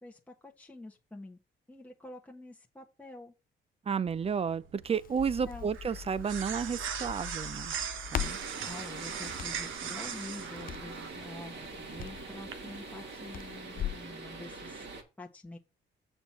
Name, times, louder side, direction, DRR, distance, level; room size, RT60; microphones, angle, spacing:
voice 1, 0.0-1.4 1.7-3.3 5.5-5.7 8.5-14.9 15.2-15.6, left 2 dB, 5° left, 1.2 m, -47 dB
voice 2, 3.9-7.8 8.1-8.4, right 6 dB, 30° right, 0.6 m, -32 dB
sound 1, 4.1-12.5, right 8 dB, 80° right, 1.2 m, -40 dB
Crackle, 4.8-14.1, left 11 dB, 45° left, 0.5 m, -42 dB
sound 2, 8.2-15.0, right 3 dB, 60° right, 2.4 m, -44 dB
6.7 x 4.5 x 5.7 m
cardioid pair, 90°, 20 cm